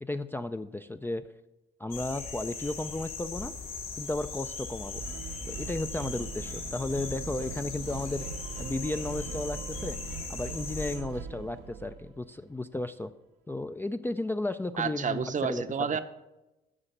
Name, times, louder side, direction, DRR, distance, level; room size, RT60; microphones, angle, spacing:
voice 1, 0.0-1.2 1.8-3.5 4.0-5.0 5.5-8.3 8.6-10.0 10.3-13.1 13.5-15.6, left 2 dB, 10° left, 7 dB, 0.3 m, -34 dB
sound 1, 1.9-11.0, left 5 dB, 80° left, 3.7 m, -39 dB
sound 2, 5.0-12.3, right 6 dB, 85° right, 0.8 m, -41 dB
voice 2, 14.8-16.0, right 6 dB, 40° right, 11 dB, 0.7 m, -30 dB
9.9 x 6.1 x 6.6 m, 1.0 s
cardioid pair, 90°, 20 cm